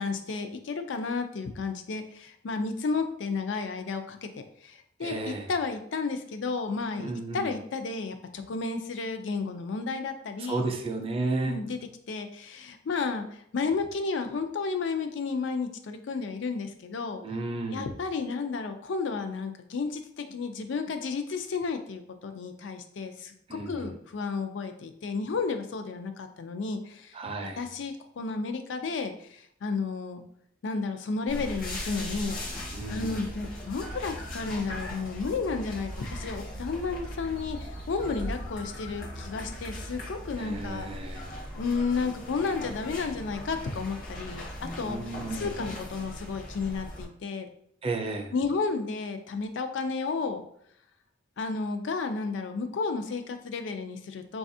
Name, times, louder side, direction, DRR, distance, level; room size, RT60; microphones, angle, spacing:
voice 1, 0.0-10.6 11.3-11.8 12.1-17.2 17.7-27.2 27.5-30.2 30.6-32.4 32.9-41.2 41.6-44.5 44.8-47.5 48.3-50.4 51.4-54.4, left 4 dB, 75° left, 7 dB, 0.4 m, -32 dB
voice 2, 5.0-5.5 7.0-7.5 10.4-11.6 17.2-17.9 23.5-23.9 27.1-27.6 32.7-33.1 40.4-41.3 44.8-45.5 47.8-48.3, right 2 dB, 30° right, 3 dB, 0.4 m, -33 dB
sound 1, 31.3-47.1, equal, 50° left, 0.8 m, -39 dB
4.1 x 2.4 x 2.6 m, 0.69 s
head